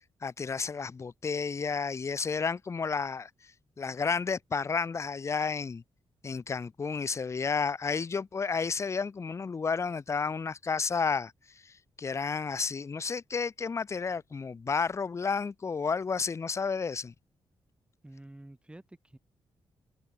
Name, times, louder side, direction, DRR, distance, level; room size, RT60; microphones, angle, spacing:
voice 1, 0.2-3.3 3.8-5.8 6.2-11.3 11.6-17.1, left 5 dB, 30° left, 0.4 m, -31 dB
voice 2, 18.0-19.2, right 1 dB, 10° right, 4.3 m, -49 dB
cardioid pair, 70°, 10 cm